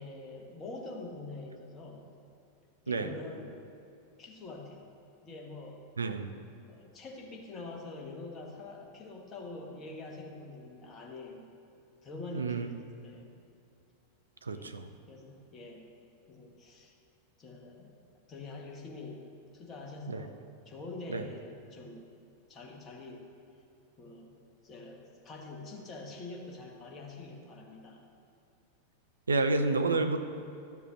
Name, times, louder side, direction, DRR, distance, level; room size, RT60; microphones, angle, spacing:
voice 1, 0.0-2.1 2.8-3.6 4.2-4.9 5.2-5.8 6.7-11.5 12.0-13.3 14.5-14.7 15.1-15.9 16.3-16.9 17.4-17.9 18.3-19.2 19.5-22.1 22.5-23.3 24.0-24.4 24.6-28.0, left 2 dB, 25° left, 0 dB, 1.3 m, -45 dB
voice 2, 6.0-6.3 12.3-12.7 14.4-14.9 20.1-20.3 21.1-21.2 29.3-30.3, right 3 dB, 75° right, 8 dB, 0.5 m, -30 dB
12.0 x 7.2 x 3.0 m, 2.6 s
figure-of-eight pair, 90°, 0 cm